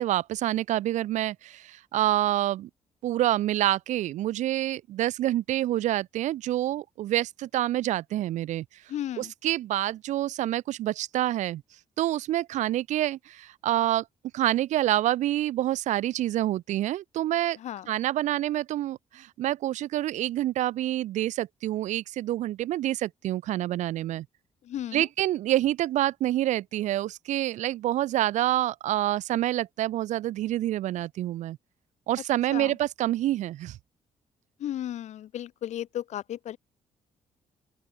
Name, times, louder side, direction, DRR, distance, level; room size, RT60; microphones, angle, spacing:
voice 1, 0.0-2.7 3.0-8.6 9.2-11.6 12.0-14.0 14.3-17.6 17.9-24.2 24.9-31.6 32.1-33.8, right 14 dB, 90° right, 1.3 m, -27 dB
voice 2, 8.9-9.3 17.6-17.9 24.6-25.1 32.5-32.8 34.6-36.6, left 11 dB, 75° left, 5.2 m, -34 dB
open air
cardioid pair, 130°, 12 cm